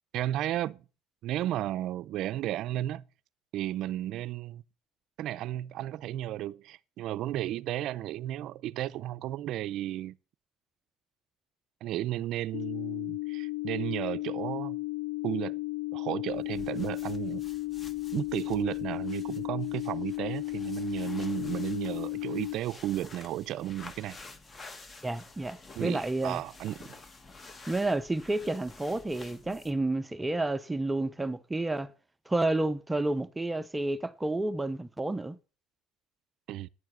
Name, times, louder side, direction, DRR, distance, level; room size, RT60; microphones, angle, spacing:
voice 1, 0.1-0.8 1.2-3.0 3.5-4.6 5.2-10.2 11.8-14.8 15.2-15.6 15.9-17.5 18.1-24.2 25.8-26.9 36.5-36.7, right 13 dB, 55° right, 0.5 m, -33 dB
sound 1, 12.5-22.5, left 20 dB, 70° left, 0.5 m, -34 dB
sound 2, 16.3-29.9, left 3 dB, 20° left, 1.4 m, -50 dB
voice 2, 25.0-26.4 27.7-31.9 32.3-35.4, right 2 dB, 10° right, 0.6 m, -30 dB
9.7 x 7.4 x 8.0 m
cardioid pair, 125°, 0 cm